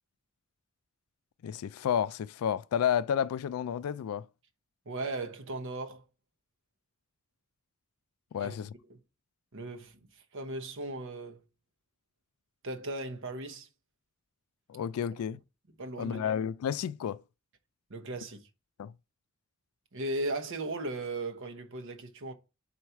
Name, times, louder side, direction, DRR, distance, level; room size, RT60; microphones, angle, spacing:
voice 1, 1.4-4.3 8.3-8.7 14.7-15.4 16.0-17.2 18.8-18.9, left 8 dB, 90° left, 0.3 m, -31 dB
voice 2, 4.9-6.0 8.4-8.5 8.9-9.0 9.5-11.4 12.6-13.7 15.8-16.2 17.9-18.4 19.9-22.3, right 2 dB, 65° right, 1.0 m, -37 dB
4.6 x 4.3 x 5.6 m
head